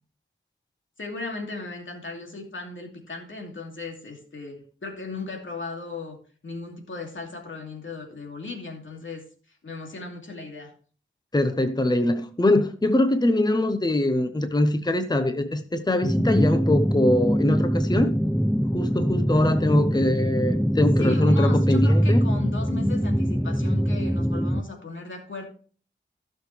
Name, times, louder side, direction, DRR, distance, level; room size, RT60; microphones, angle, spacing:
voice 1, 1.0-6.2 6.4-9.2 9.6-10.7 21.0-25.4, left 3 dB, 80° left, 2.6 m, -36 dB
voice 2, 11.3-18.2 18.7-22.2, left 1 dB, 20° left, 0.8 m, -23 dB
sound 1, 16.0-24.6, equal, ahead, 0.4 m, -23 dB
15.5 x 6.5 x 3.3 m
wide cardioid pair, 75°, 20 cm